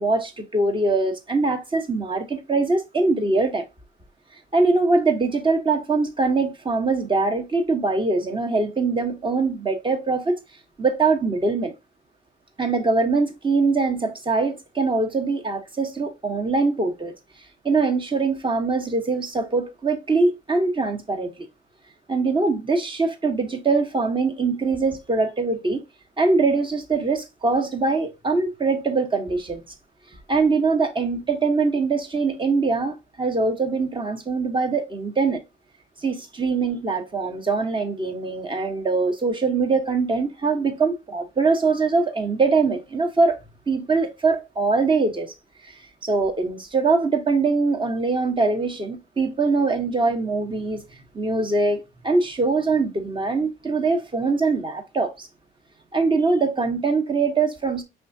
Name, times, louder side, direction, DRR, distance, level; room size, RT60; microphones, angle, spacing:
voice 1, 0.0-3.6 4.5-10.4 10.8-11.7 12.6-17.1 17.6-21.3 22.1-25.8 26.2-29.6 30.3-35.4 36.0-43.4 43.7-45.3 45.6-45.7 46.0-50.8 51.1-55.3 55.9-57.8, right 3 dB, 25° right, 1.1 m, -22 dB
5.2 x 3.5 x 2.7 m
cardioid pair, 90°, 20 cm